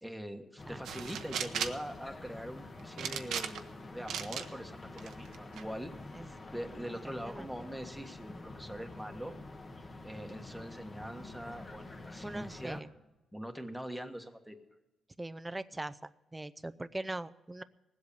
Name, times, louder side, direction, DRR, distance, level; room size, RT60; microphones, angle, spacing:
voice 1, 0.0-3.7 3.9-5.9 6.3-9.3 10.0-12.8 13.3-14.6, equal, ahead, 5 dB, 1.4 m, -43 dB
sound 1, 0.6-12.8, left 2 dB, 30° left, 1.4 m, -48 dB
sound 2, 0.8-1.9 3.0-3.7 4.1-4.5 5.0-5.6, right 8 dB, 80° right, 0.9 m, -36 dB
voice 2, 12.2-12.9 15.2-17.6, right 2 dB, 15° right, 13 dB, 0.5 m, -41 dB
19.0 x 8.0 x 6.8 m, 1.0 s
cardioid pair, 90°, 0 cm